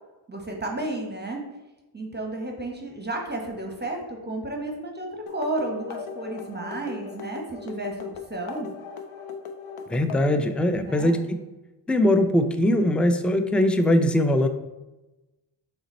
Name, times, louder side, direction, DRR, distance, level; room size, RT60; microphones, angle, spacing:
voice 1, 0.3-1.4 1.9-8.7 10.7-11.1, right 2 dB, 20° right, 1 dB, 0.9 m, -32 dB
sound 1, 5.3-10.4, left 6 dB, 75° left, 0.7 m, -39 dB
voice 2, 9.9-11.4 11.9-14.5, left 1 dB, ahead, 8 dB, 0.3 m, -21 dB
3.9 x 3.3 x 4.1 m, 1.0 s
cardioid pair, 45°, 49 cm